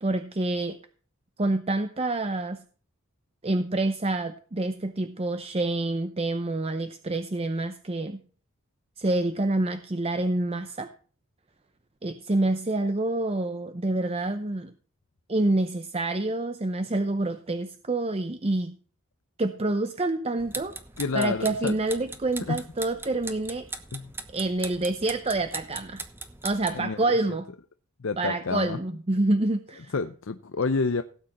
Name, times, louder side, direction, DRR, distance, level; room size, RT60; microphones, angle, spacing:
voice 1, 0.0-0.8 1.4-2.6 3.4-8.2 9.0-10.9 12.0-14.7 15.3-18.8 19.4-20.8 21.1-23.7 24.3-26.0 26.4-27.5 28.2-29.9, right 2 dB, 30° right, 0.7 m, -27 dB
sound 1, 20.4-26.9, right 3 dB, 10° right, 1.0 m, -40 dB
voice 2, 21.0-21.7 22.4-22.6 23.9-24.1 26.7-27.2 28.0-28.8 29.9-31.0, left 4 dB, 65° left, 0.6 m, -29 dB
17.0 x 8.8 x 4.2 m
head